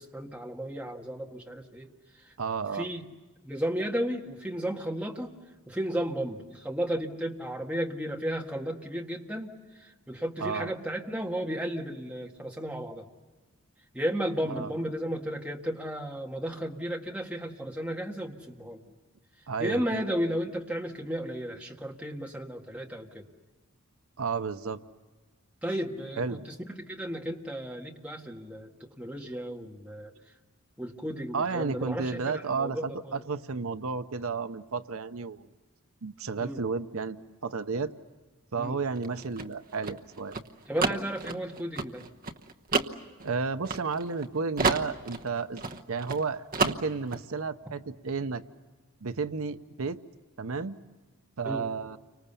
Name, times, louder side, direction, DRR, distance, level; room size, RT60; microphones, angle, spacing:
voice 1, 0.0-1.9 2.2-2.3 2.7-3.0 3.4-5.3 5.7-9.5 9.8-13.1 13.9-18.8 19.6-23.3 25.6-30.1 30.8-33.0 36.4-36.6 38.6-38.8 40.7-42.0 51.4-51.7, equal, 5° right, 0 dB, 1.8 m, -34 dB
voice 2, 2.4-2.9 10.4-10.7 14.5-14.7 19.5-20.0 24.2-24.8 26.2-26.4 31.3-35.5 36.0-37.2 37.4-37.9 38.5-40.4 43.2-45.6 45.9-48.4 49.0-50.0 50.4-50.8 51.4-52.0, right 4 dB, 75° right, 11 dB, 0.8 m, -32 dB
sound 1, 39.0-44.3 44.6-46.2 46.5-47.2, right 3 dB, 40° right, 1.1 m, -30 dB
30.0 x 25.0 x 6.9 m, 1.3 s
head